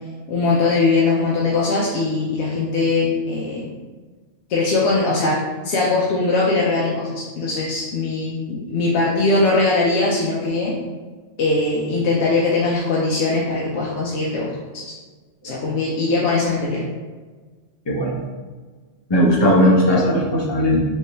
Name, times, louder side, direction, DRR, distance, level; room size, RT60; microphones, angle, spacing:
voice 1, 0.3-3.6 4.5-10.7 11.4-14.9 15.4-16.8, left 3 dB, 65° left, -5 dB, 0.8 m, -21 dB
voice 2, 19.1-20.8, equal, 25° left, -4 dB, 0.6 m, -17 dB
3.8 x 3.0 x 2.6 m, 1.4 s
omnidirectional pair, 1.3 m